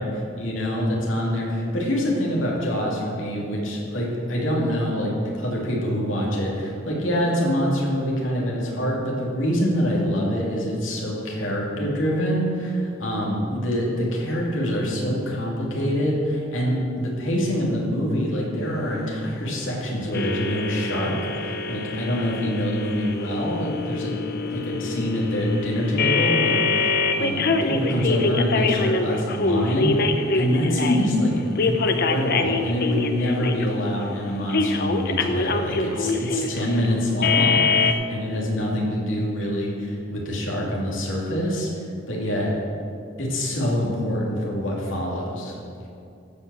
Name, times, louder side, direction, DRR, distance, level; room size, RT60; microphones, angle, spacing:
voice 1, 0.4-24.2 24.5-31.3 31.6-42.5 43.2-45.6, equal, 75° left, -3 dB, 2.8 m, -25 dB
sound 1, 20.1-31.1 31.6-33.9 34.5-37.9, left 4 dB, 55° left, 0.7 m, -25 dB
14.5 x 5.5 x 7.0 m, 2.5 s
head